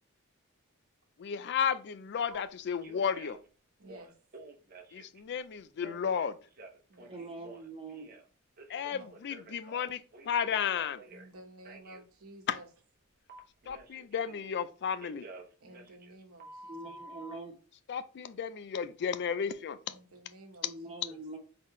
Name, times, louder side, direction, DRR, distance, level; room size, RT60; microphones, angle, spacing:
voice 1, 1.2-3.4 4.9-6.4 8.7-11.0 12.5-12.6 13.7-15.3 17.9-19.9 20.6-20.7, left 7 dB, 50° left, 0.4 m, -33 dB
Telephone, 2.3-2.4 2.8-3.5 3.8-5.2 5.8-8.3 8.6-11.3 11.6-12.0 13.3-14.7 15.0-17.3, right 2 dB, 45° right, 0.8 m, -51 dB
voice 2, 3.8-4.1 6.9-7.2 8.9-9.1 11.1-12.7 15.6-17.0 19.9-21.2, right 1 dB, 70° right, 1.0 m, -53 dB
voice 3, 7.1-8.1 16.7-17.6 20.6-21.4, right 3 dB, 25° right, 1.3 m, -43 dB
3.9 x 3.8 x 3.1 m
head